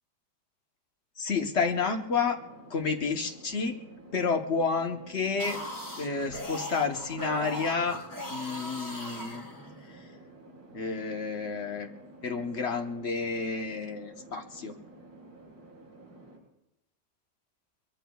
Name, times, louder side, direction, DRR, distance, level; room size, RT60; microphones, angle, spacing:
voice 1, 1.2-2.4 2.7-3.8 4.1-5.6 6.0-8.0 8.3-9.4 10.7-11.9 12.2-14.8, left 4 dB, 45° left, 4 dB, 1.3 m, -30 dB
sound 1, 1.5-16.4, right 2 dB, 60° right, 5.9 m, -51 dB
sound 2, 5.2-10.0, left 1 dB, 10° left, 2.0 m, -39 dB
23.0 x 22.5 x 2.4 m, 0.90 s
omnidirectional pair, 1.9 m